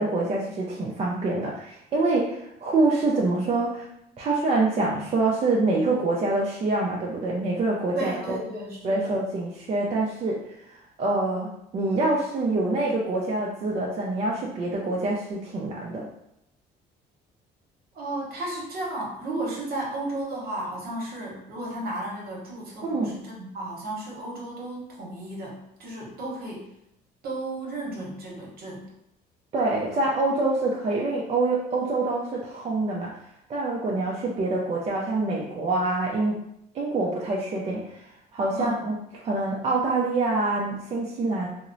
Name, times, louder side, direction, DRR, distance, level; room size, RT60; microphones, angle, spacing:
voice 1, 0.0-3.9 4.2-8.4 8.8-10.4 11.0-11.5 11.7-16.1 22.8-23.1 29.5-33.1 33.5-36.4 36.7-38.1 38.3-39.0 39.2-41.5, right 2 dB, 40° right, -3 dB, 0.4 m, -25 dB
voice 2, 7.9-9.2 17.9-26.7 27.2-28.9 38.5-38.8, right 1 dB, 60° right, -3 dB, 0.9 m, -34 dB
2.8 x 2.0 x 2.5 m, 0.79 s
cardioid pair, 110°, 17 cm